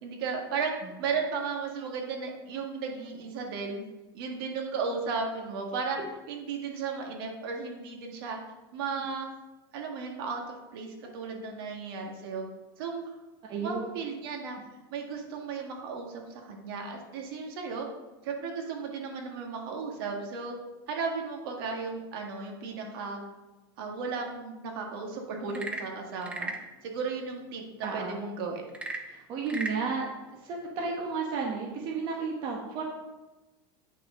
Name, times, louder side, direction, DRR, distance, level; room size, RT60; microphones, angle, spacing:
voice 1, 0.0-3.8 4.1-6.0 6.3-8.4 8.7-9.3 9.7-12.5 12.8-13.1 13.6-14.6 14.9-17.9 18.2-20.6 20.9-23.2 23.8-26.5 26.8-28.6, right 5 dB, 70° right, 1 dB, 1.9 m, -35 dB
voice 2, 13.4-13.9 27.8-28.2 29.0-32.8, right 4 dB, 40° right, -1 dB, 1.3 m, -33 dB
Frog / Percussion / Wood, 25.4-26.7 28.7-29.8, right 2 dB, 10° right, 0.7 m, -36 dB
9.8 x 5.9 x 3.9 m, 1.1 s
supercardioid pair, 145°, 13 cm